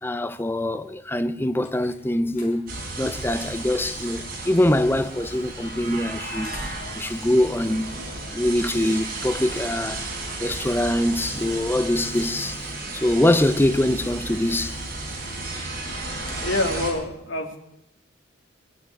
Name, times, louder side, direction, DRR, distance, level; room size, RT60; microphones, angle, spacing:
voice 1, 0.0-2.7 3.0-6.5 7.0-8.0 8.3-10.0 10.4-14.8, left 1 dB, 10° left, 0.6 m, -23 dB
sound 1, 1.3-8.6, left 1 dB, 40° left, 4.8 m, -47 dB
sound 2, 2.7-16.9, right 2 dB, 50° right, 4.2 m, -33 dB
voice 2, 16.4-17.6, left 2 dB, 90° left, 2.6 m, -26 dB
21.5 x 8.0 x 8.3 m
head